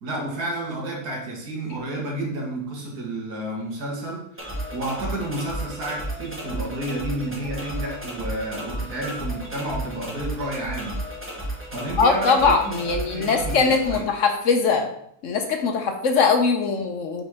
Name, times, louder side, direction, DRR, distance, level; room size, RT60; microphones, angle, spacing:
voice 1, 0.0-11.0 11.7-14.1, right 1 dB, 90° right, -1 dB, 1.9 m, -31 dB
sound 1, 4.4-14.0, right 1 dB, 10° right, 1.1 m, -33 dB
voice 2, 12.0-14.9 15.2-17.2, left 5 dB, 60° left, 5 dB, 1.0 m, -21 dB
5.2 x 3.9 x 4.7 m, 0.69 s
omnidirectional pair, 1.6 m